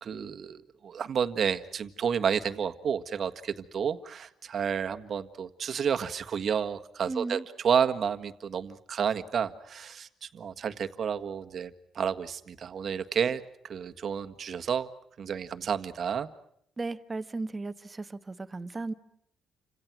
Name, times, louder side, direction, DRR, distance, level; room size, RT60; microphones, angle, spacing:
voice 1, 0.0-14.9 15.2-16.3, right 7 dB, 50° right, 9 dB, 1.6 m, -31 dB
voice 2, 7.1-7.4 16.8-18.9, right 3 dB, 20° right, 11 dB, 1.4 m, -35 dB
30.0 x 26.5 x 6.1 m, 0.72 s
cardioid pair, 125°, 0 cm